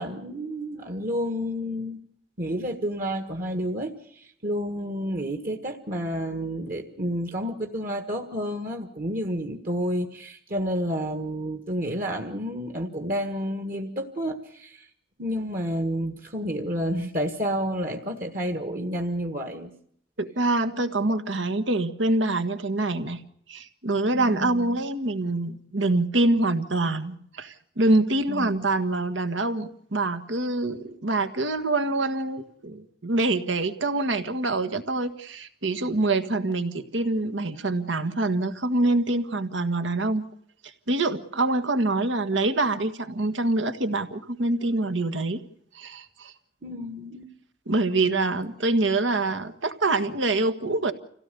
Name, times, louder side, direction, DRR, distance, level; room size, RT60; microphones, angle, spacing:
voice 1, 0.0-2.0 2.4-14.8 15.2-19.7 24.1-24.8 28.3-28.7 46.6-47.3, equal, 45° right, 5 dB, 1.6 m, -30 dB
voice 2, 20.2-23.2 23.5-40.2 40.6-45.4 45.7-46.3 47.6-50.9, right 2 dB, 85° right, 10 dB, 1.6 m, -25 dB
26.5 x 17.0 x 6.8 m, 0.67 s
head